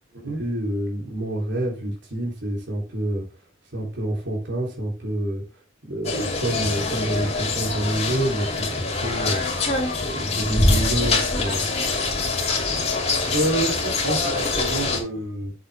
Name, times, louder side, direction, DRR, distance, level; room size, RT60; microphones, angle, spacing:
voice 1, 0.4-3.2 3.7-5.6 5.9-9.4 10.0-11.7, right 1 dB, 60° right, 3.5 m, -27 dB
sound 1, 6.0-15.0, left 3 dB, 35° left, 2.8 m, -24 dB
voice 2, 13.3-15.5, right 2 dB, 80° right, 3.5 m, -27 dB
7.9 x 7.8 x 3.5 m
head